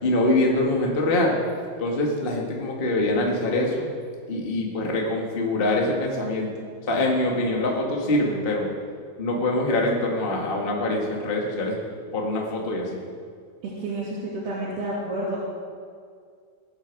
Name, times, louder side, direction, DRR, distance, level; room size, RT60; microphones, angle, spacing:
voice 1, 0.0-1.3 1.8-3.9 4.3-6.5 6.9-8.7 9.2-11.8 12.1-13.0, left 1 dB, 90° left, -1 dB, 0.5 m, -24 dB
voice 2, 13.6-15.4, right 2 dB, 75° right, -8 dB, 4.4 m, -30 dB
20.5 x 9.0 x 4.7 m, 2.2 s
omnidirectional pair, 4.5 m